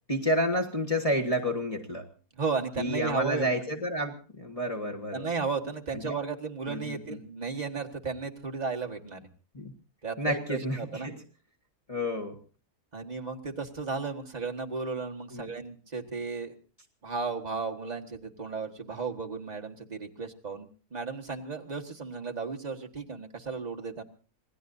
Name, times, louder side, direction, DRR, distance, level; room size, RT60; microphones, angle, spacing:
voice 1, 0.1-2.1 2.8-5.3 6.0-6.1 6.7-7.2 9.5-9.7 10.2-11.2 11.9-12.4 15.3-15.5, equal, 25° left, 0 dB, 1.5 m, -30 dB
voice 2, 2.3-3.5 5.1-9.3 10.0-11.1 12.9-16.5 17.0-24.0, right 4 dB, 30° right, 2 dB, 1.7 m, -34 dB
27.0 x 19.5 x 2.7 m, 0.37 s
omnidirectional pair, 1.5 m